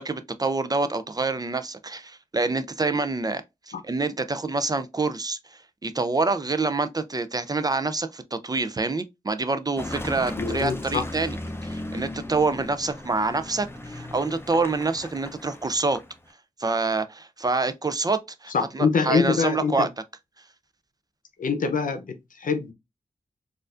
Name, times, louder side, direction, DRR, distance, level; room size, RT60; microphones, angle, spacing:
voice 1, 0.0-3.4 3.7-11.4 11.6-16.0 16.6-19.9, right 3 dB, 30° right, 0.4 m, -26 dB
Car passing by / Engine, 9.8-16.3, left 1 dB, 15° left, 0.6 m, -37 dB
voice 2, 10.4-11.1 18.5-19.9 21.4-22.7, left 5 dB, 75° left, 0.7 m, -24 dB
4.3 x 2.5 x 2.4 m
wide cardioid pair, 75°, 14 cm